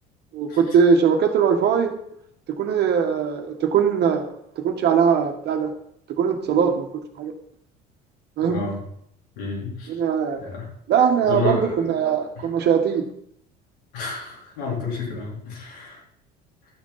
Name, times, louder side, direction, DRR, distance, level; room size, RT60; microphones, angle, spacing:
voice 1, 0.3-1.9 2.5-5.7 6.1-6.9 7.2-7.3 8.4-8.6 9.9-10.4 10.9-13.1, right 7 dB, 55° right, 5 dB, 1.8 m, -21 dB
voice 2, 8.5-8.8 9.4-9.9 10.4-10.7 11.3-11.9 13.9-16.0, left 3 dB, 80° left, -3 dB, 4.2 m, -30 dB
12.0 x 6.4 x 5.8 m, 0.71 s
hypercardioid pair, 75°, 21 cm